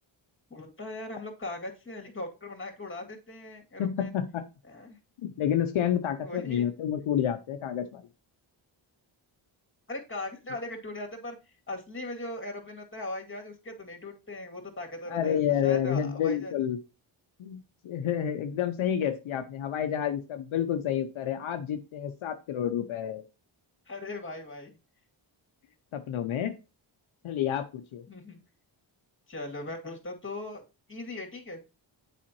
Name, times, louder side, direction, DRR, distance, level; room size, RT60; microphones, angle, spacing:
voice 1, 0.5-4.2 4.7-5.0 6.2-6.7 9.9-11.4 11.7-16.5 23.9-24.7 28.1-28.4 29.3-30.6 30.9-31.6, left 2 dB, 25° left, 2 dB, 2.3 m, -39 dB
voice 2, 3.8-4.4 5.2-8.0 15.1-16.8 17.4-23.2 25.9-26.5 27.2-28.0, left 9 dB, 75° left, 7 dB, 0.7 m, -29 dB
7.4 x 5.0 x 2.9 m, 0.29 s
cardioid pair, 50°, 48 cm